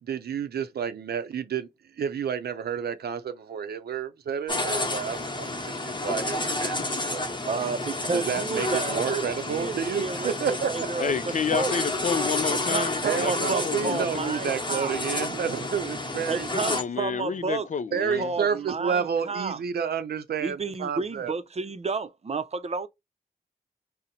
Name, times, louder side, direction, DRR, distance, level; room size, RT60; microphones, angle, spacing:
voice 1, 0.0-1.7 2.0-7.2 7.6-7.7 8.1-10.9 13.0-16.5 17.9-21.3, right 7 dB, 90° right, 0.5 m, -30 dB
sound 1, 4.5-16.8, left 2 dB, 30° left, 1.0 m, -30 dB
voice 2, 7.5-9.2 9.5-11.1 11.5-11.7 12.5-14.9 16.3-17.7 18.2-19.6 20.4-22.9, right 4 dB, 40° right, 0.5 m, -31 dB
voice 3, 11.0-14.4 16.6-18.3, left 6 dB, 50° left, 0.4 m, -30 dB
2.8 x 2.1 x 3.8 m
cardioid pair, 45°, 16 cm